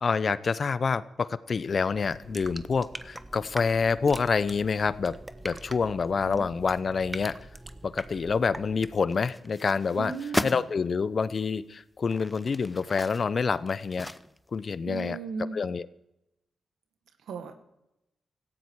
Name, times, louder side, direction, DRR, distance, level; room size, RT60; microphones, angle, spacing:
voice 1, 0.0-5.2 5.4-7.3 7.8-10.1 10.4-14.1 14.5-15.2 15.5-15.9, left 5 dB, 55° left, 16 dB, 0.7 m, -27 dB
sound 1, 1.8-9.1, right 1 dB, 15° right, 1.1 m, -43 dB
sound 2, 9.1-10.7 11.3-11.4 12.0-14.6 15.0-15.1, left 1 dB, 15° left, 0.7 m, -36 dB
voice 2, 10.0-10.6 14.9-15.6 17.3-17.5, right 5 dB, 85° right, 8 dB, 1.7 m, -36 dB
17.5 x 15.0 x 4.8 m, 0.88 s
cardioid pair, 60°, 0 cm